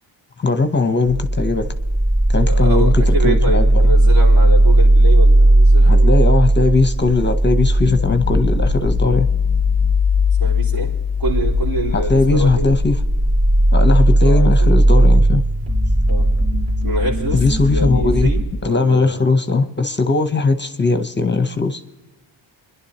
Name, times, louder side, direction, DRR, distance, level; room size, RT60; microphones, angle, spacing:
voice 1, 0.4-1.7 2.3-3.8 5.9-9.3 11.9-13.0 13.7-15.4 17.3-18.3 18.6-21.8, left 3 dB, 25° left, 0.7 m, -18 dB
sound 1, 1.1-18.4, right 1 dB, 30° right, 2.1 m, -15 dB
voice 2, 2.4-6.1 10.4-12.7 14.2-14.8 16.1-16.3 16.8-17.5 17.7-19.2, right 1 dB, 75° right, 4.0 m, -26 dB
28.5 x 11.0 x 2.9 m
cardioid pair, 90°, 48 cm